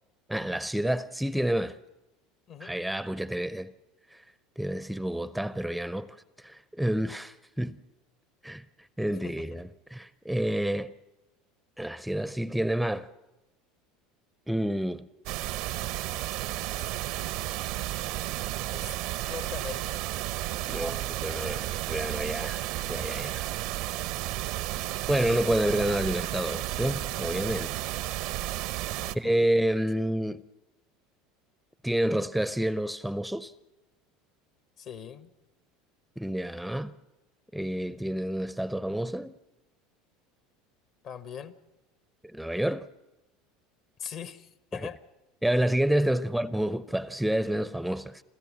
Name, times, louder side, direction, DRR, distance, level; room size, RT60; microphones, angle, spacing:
voice 1, 0.3-1.8 2.6-3.7 4.1-4.2 4.6-7.8 8.4-8.6 9.0-10.9 11.8-13.1 14.5-15.1 20.7-23.4 25.1-27.9 29.1-30.4 31.8-33.5 36.2-36.9 37.5-39.3 42.3-42.9 45.4-48.2, right 1 dB, ahead, 0.6 m, -29 dB
sound 1, 15.3-29.2, right 15 dB, 65° right, 0.7 m, -33 dB
voice 2, 16.8-17.2 18.7-18.9 19.3-20.0 29.0-29.4 34.8-35.3 41.0-41.6 44.0-45.0 46.2-46.3, left 8 dB, 50° left, 1.2 m, -41 dB
28.0 x 13.5 x 7.4 m
hypercardioid pair, 75°, 0 cm